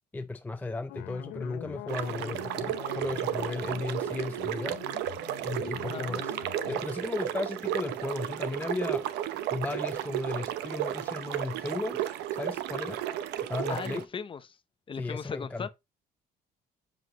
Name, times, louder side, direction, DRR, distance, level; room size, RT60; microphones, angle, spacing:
voice 1, 0.1-4.8 5.4-6.3 6.7-13.0 13.5-14.1 15.0-15.7, left 2 dB, 10° left, 0.4 m, -35 dB
sound 1, 0.9-6.8, left 17 dB, 90° left, 0.6 m, -44 dB
sound 2, 1.9-14.0, right 12 dB, 85° right, 0.8 m, -33 dB
voice 2, 5.8-6.2 13.7-14.4 14.9-15.7, left 6 dB, 30° left, 0.9 m, -37 dB
7.7 x 7.3 x 3.1 m
cardioid pair, 110°, 17 cm